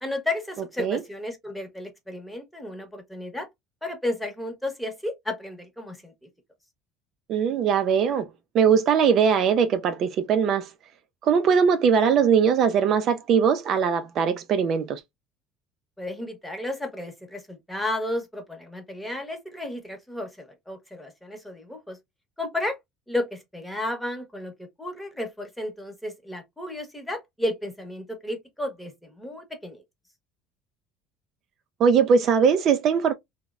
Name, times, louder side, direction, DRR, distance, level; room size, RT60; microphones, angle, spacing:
voice 1, 0.0-3.5 3.8-6.1 16.0-22.0 22.4-22.8 23.1-29.8, left 1 dB, 5° left, 0.8 m, -33 dB
voice 2, 7.3-8.3 8.5-10.7 11.2-15.0 31.8-33.1, right 7 dB, 50° right, 0.3 m, -21 dB
2.9 x 2.0 x 2.3 m
supercardioid pair, 110°, 0 cm